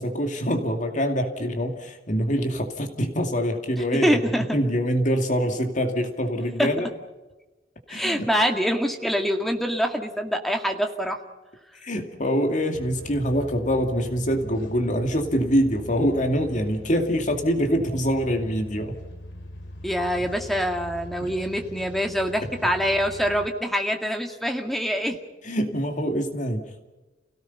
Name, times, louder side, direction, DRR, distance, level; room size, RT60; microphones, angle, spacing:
voice 1, 0.0-4.2 4.5-6.9 7.9-8.3 11.8-19.0 21.2-21.3 25.4-26.8, equal, 45° left, 5 dB, 2.4 m, -25 dB
voice 2, 4.0-4.5 6.6-6.7 7.9-11.2 19.8-25.2, equal, ahead, 4 dB, 2.1 m, -25 dB
sound 1, 12.7-23.5, equal, 80° left, 2.6 m, -41 dB
29.5 x 18.0 x 5.6 m, 1.1 s
head